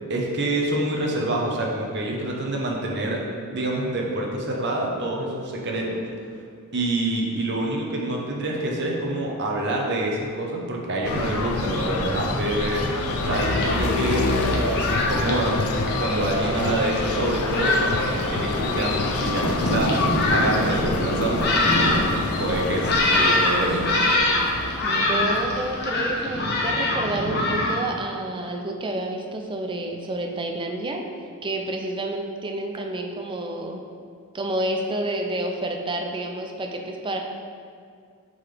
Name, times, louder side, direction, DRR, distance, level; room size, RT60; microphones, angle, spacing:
voice 1, 0.1-3.2 3.5-6.0 6.7-12.9 13.2-15.6 16.0-20.0 20.3-23.8, right 1 dB, 50° right, -1 dB, 0.9 m, -26 dB
sound 1, 11.0-26.7, left 2 dB, 75° left, 0.5 m, -27 dB
Thunderstorm, 13.0-27.8, left 1 dB, 50° left, 0.9 m, -25 dB
voice 2, 24.8-31.0 31.4-33.8 34.3-37.2, right 1 dB, 20° right, 3 dB, 0.4 m, -29 dB
7.2 x 3.9 x 3.3 m, 2.2 s
head